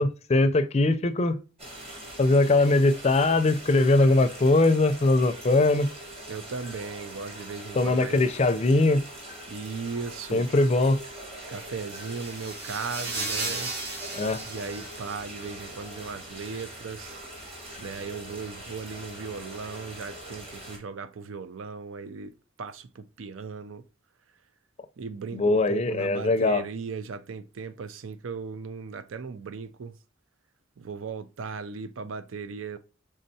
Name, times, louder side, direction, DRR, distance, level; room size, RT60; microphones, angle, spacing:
voice 1, 0.0-1.4 2.2-5.9 7.8-9.0 10.3-11.0 14.2-14.4 25.3-26.6, left 2 dB, 35° left, 0.4 m, -21 dB
sound 1, 1.6-20.8, right 1 dB, 30° right, 1.5 m, -42 dB
voice 2, 6.3-8.2 9.5-10.5 11.5-13.7 14.4-17.2 17.8-23.8 25.0-30.0 30.8-32.8, right 5 dB, 85° right, 0.4 m, -37 dB
sound 2, 11.7-15.6, right 2 dB, 55° right, 1.6 m, -35 dB
5.4 x 3.6 x 2.7 m
head